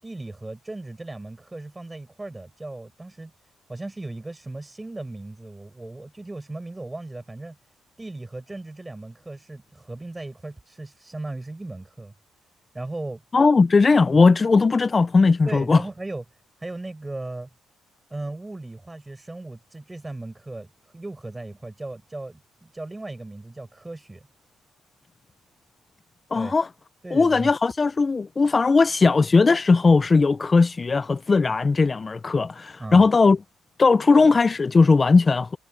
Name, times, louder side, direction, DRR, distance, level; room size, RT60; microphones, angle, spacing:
voice 1, 0.0-3.3 3.7-7.6 8.0-12.1 12.7-13.2 14.1-14.2 15.5-16.2 16.6-17.5 18.1-24.3 26.3-26.5 27.0-27.5 32.8-33.1, right 2 dB, 15° right, 5.6 m, -37 dB
voice 2, 13.3-15.8 26.3-26.7 27.1-33.4 33.8-35.6, left 4 dB, 30° left, 0.5 m, -18 dB
cardioid pair, 90°, 0 cm